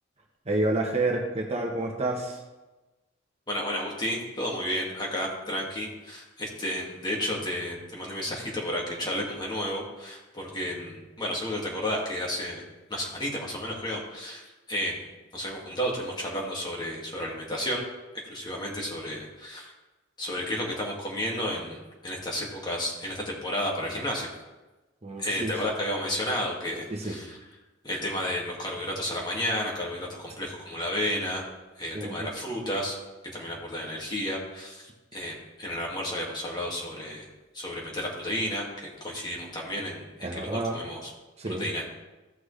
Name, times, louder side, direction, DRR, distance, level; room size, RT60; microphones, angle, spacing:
voice 1, 0.5-2.4 25.0-25.5 26.9-27.2 31.9-32.3 40.2-40.8 41.4-41.7, right 2 dB, 35° right, 0 dB, 1.2 m, -29 dB
voice 2, 3.5-12.6 12.9-15.0 15.3-17.8 18.3-19.7 20.2-24.3 25.2-27.4 27.8-31.4 31.8-33.0 33.3-37.2 37.5-41.1 41.6-41.9, left 1 dB, 25° left, -3 dB, 2.2 m, -32 dB
15.0 x 6.1 x 3.3 m, 1.1 s
head